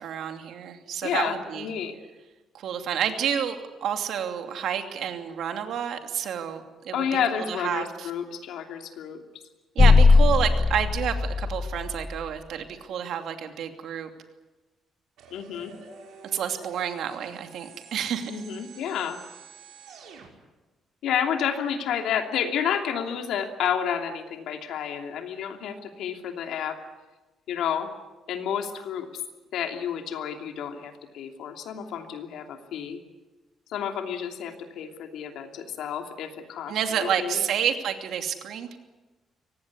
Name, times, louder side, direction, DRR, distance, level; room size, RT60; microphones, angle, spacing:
voice 1, 0.0-1.7 2.5-7.0 7.4-8.1 9.7-14.1 16.3-18.3 36.7-38.8, right 8 dB, 65° right, 5 dB, 2.7 m, -29 dB
voice 2, 1.0-1.9 6.9-9.2 15.3-15.7 18.3-19.2 21.0-26.8 27.5-27.9 28.3-29.1 29.5-33.0 33.7-37.4, left 8 dB, 80° left, 4 dB, 2.9 m, -30 dB
sound 1, 9.8-12.2, left 4 dB, 20° left, 0.9 m, -19 dB
sound 2, 15.2-20.3, right 5 dB, 85° right, 5.9 m, -48 dB
24.5 x 18.5 x 9.8 m, 1.2 s
cardioid pair, 170°, 0 cm